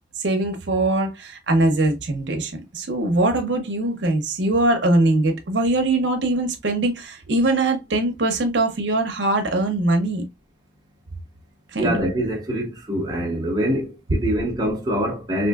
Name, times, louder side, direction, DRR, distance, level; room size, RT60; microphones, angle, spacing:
voice 1, 0.2-10.2 11.7-11.9, right 2 dB, 75° right, 0.7 m, -22 dB
voice 2, 11.8-15.5, equal, 20° right, 0.7 m, -24 dB
3.6 x 2.6 x 2.2 m
head